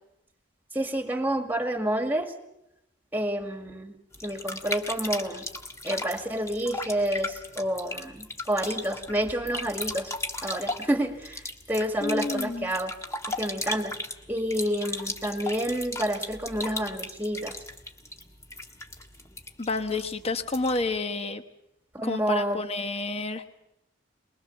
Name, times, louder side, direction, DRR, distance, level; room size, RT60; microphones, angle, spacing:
voice 1, 0.7-2.3 3.1-3.9 4.2-5.5 5.8-10.1 10.4-13.0 13.3-14.0 14.3-17.6 21.9-22.6, right 1 dB, 10° right, 6 dB, 2.0 m, -29 dB
sound 1, 4.1-21.0, left 2 dB, 15° left, 1.6 m, -37 dB
voice 2, 12.0-12.7 19.6-21.4 22.0-23.4, left 3 dB, 30° left, 9 dB, 1.1 m, -29 dB
23.5 x 21.5 x 7.0 m, 0.85 s
head